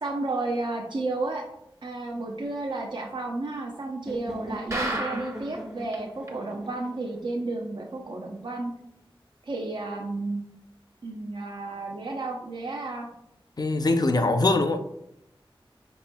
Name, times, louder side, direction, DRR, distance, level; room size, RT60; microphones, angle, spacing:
voice 1, 0.0-1.4 1.8-8.7 9.5-10.5 11.0-13.1, right 2 dB, 55° right, 0.6 m, -32 dB
sound 1, 4.1-8.0, equal, 5° right, 0.5 m, -40 dB
sound 2, 4.7-5.6 5.9-6.0 6.3-6.4 6.8-6.9, right 1 dB, 35° right, 0.9 m, -31 dB
voice 2, 13.6-14.8, left 2 dB, 45° left, 0.5 m, -22 dB
5.2 x 4.2 x 2.2 m
wide cardioid pair, 55°, 9 cm